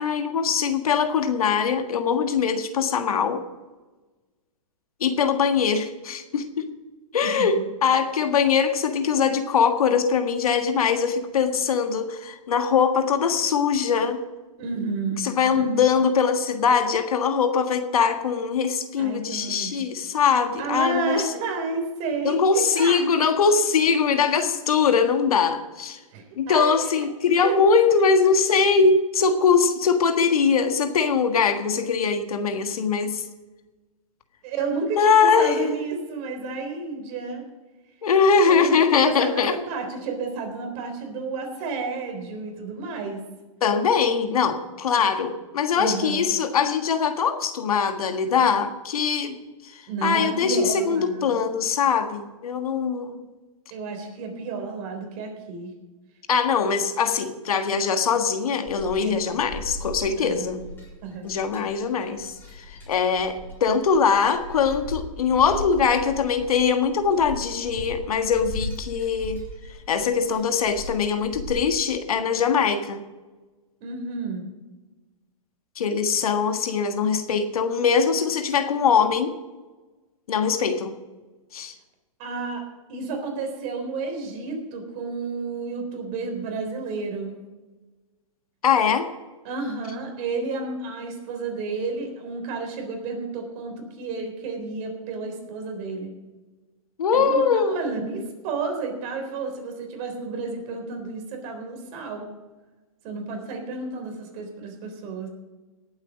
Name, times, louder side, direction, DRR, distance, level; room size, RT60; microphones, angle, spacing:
voice 1, 0.0-3.4 5.0-6.7 7.1-14.2 15.2-21.1 22.2-26.0 26.4-33.2 35.0-35.7 38.0-39.5 43.6-49.4 50.0-53.2 56.3-60.6 61.2-62.3 62.7-69.4 69.9-73.0 75.8-79.3 80.3-80.9 81.5-81.7 88.6-89.1 97.0-97.8, left 6 dB, 85° left, 7 dB, 1.6 m, -22 dB
voice 2, 14.6-15.2 15.6-15.9 19.0-19.8 20.6-23.0 26.1-27.1 27.4-28.1 34.4-37.4 38.5-43.2 45.8-46.3 49.9-51.4 53.7-55.7 59.0-59.3 60.2-60.5 61.0-61.3 73.8-74.4 82.2-87.4 89.4-96.1 97.1-102.3 103.0-105.3, right 4 dB, 40° right, 4 dB, 3.8 m, -31 dB
sound 1, 58.6-71.5, left 1 dB, 10° left, 4.3 m, -38 dB
18.5 x 8.1 x 5.2 m, 1.2 s
hypercardioid pair, 140°, 18 cm